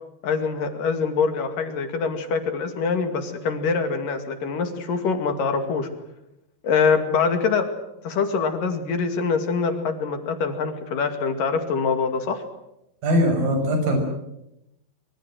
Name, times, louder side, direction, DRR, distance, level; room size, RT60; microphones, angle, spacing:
voice 1, 0.2-5.9 6.6-7.7 8.0-12.4, left 5 dB, 65° left, 7 dB, 3.9 m, -24 dB
voice 2, 13.0-14.0, equal, 70° right, 4 dB, 7.6 m, -20 dB
25.0 x 24.0 x 7.7 m, 0.86 s
omnidirectional pair, 4.3 m